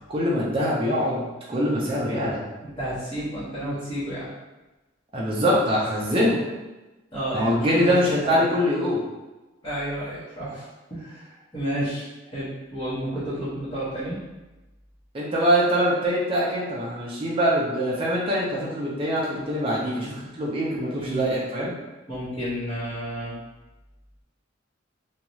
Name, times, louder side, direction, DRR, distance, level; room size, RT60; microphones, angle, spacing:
voice 1, 0.1-2.4 5.1-6.4 7.3-9.0 15.1-21.7, equal, 30° right, -5 dB, 0.5 m, -23 dB
voice 2, 2.6-4.3 7.1-8.0 8.2-8.5 9.6-14.2 21.0-21.3 22.1-23.4, equal, 25° left, -14 dB, 0.9 m, -31 dB
2.6 x 2.3 x 3.0 m, 1.1 s
head